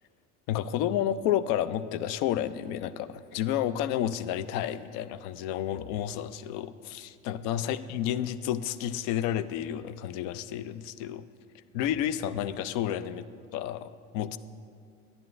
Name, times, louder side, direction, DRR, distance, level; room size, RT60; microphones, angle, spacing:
voice 1, 0.5-11.2 11.7-13.2 13.5-14.4, left 11 dB, 65° left, 14 dB, 0.5 m, -31 dB
10.5 x 9.7 x 2.5 m, 2.3 s
hypercardioid pair, 75°, 37 cm